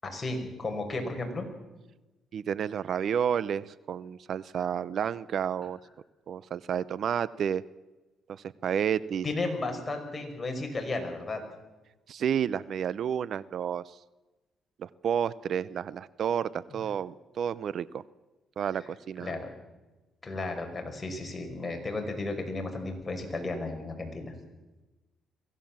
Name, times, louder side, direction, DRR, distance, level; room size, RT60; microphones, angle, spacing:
voice 1, 0.0-1.5 9.2-11.4 19.2-19.5 20.2-24.3, left 2 dB, 25° left, 3 dB, 5.6 m, -34 dB
voice 2, 2.3-5.8 6.3-7.6 8.3-9.2 12.1-14.0 14.8-18.0 18.6-19.3, right 8 dB, 60° right, 19 dB, 0.6 m, -31 dB
23.0 x 16.5 x 7.4 m, 1.1 s
cardioid pair, 90°, 0 cm